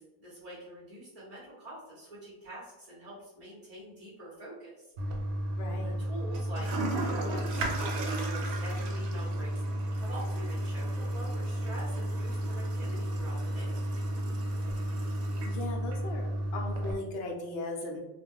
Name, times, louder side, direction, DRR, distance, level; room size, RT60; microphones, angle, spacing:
voice 1, 0.0-4.9 6.0-7.8 8.1-13.8, right 1 dB, 40° right, -7 dB, 0.8 m, -45 dB
Toilet flush, 5.0-16.9, right 1 dB, 90° right, 0.9 m, -32 dB
voice 2, 5.6-6.0 15.4-18.0, left 2 dB, 75° left, 1 dB, 0.8 m, -38 dB
2.4 x 2.1 x 3.4 m, 0.99 s
omnidirectional pair, 1.1 m